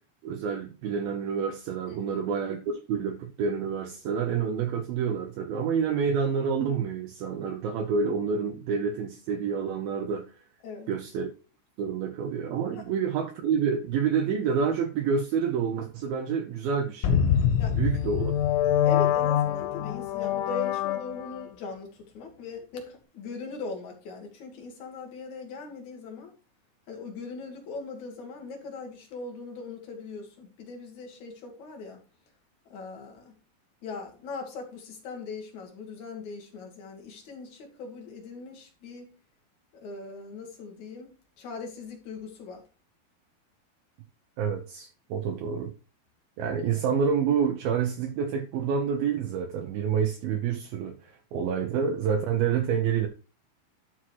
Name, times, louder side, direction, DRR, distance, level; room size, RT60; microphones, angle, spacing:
voice 1, 0.2-10.2 10.9-11.3 11.8-17.2 17.7-18.3 44.4-45.7 46.4-53.1, right 6 dB, 80° right, 2.2 m, -28 dB
sound 1, 17.0-21.5, left 9 dB, 90° left, 3.5 m, -25 dB
voice 2, 18.9-26.3 26.9-32.0 32.7-33.3 33.8-39.1 39.8-41.1 41.4-42.6, left 4 dB, 50° left, 2.6 m, -40 dB
12.0 x 6.3 x 3.1 m
omnidirectional pair, 5.3 m